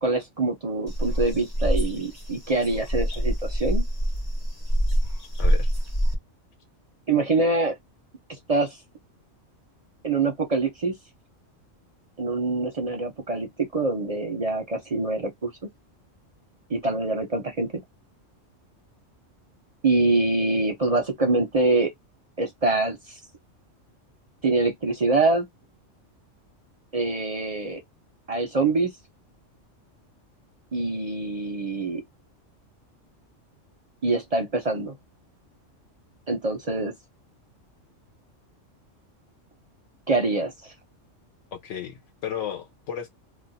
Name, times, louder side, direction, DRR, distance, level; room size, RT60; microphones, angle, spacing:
voice 1, 0.0-3.8 7.1-7.8 8.3-8.8 10.0-10.9 12.2-15.5 16.7-17.7 19.8-21.9 22.4-23.2 24.4-25.5 26.9-27.8 28.3-28.9 30.7-32.0 34.0-35.0 36.3-36.9 40.1-40.7, right 3 dB, 40° right, 0.5 m, -25 dB
sound 1, 0.9-6.1, equal, 20° left, 0.8 m, -25 dB
voice 2, 5.4-5.7 41.5-43.1, left 9 dB, 75° left, 1.0 m, -34 dB
2.4 x 2.2 x 3.9 m
omnidirectional pair, 1.3 m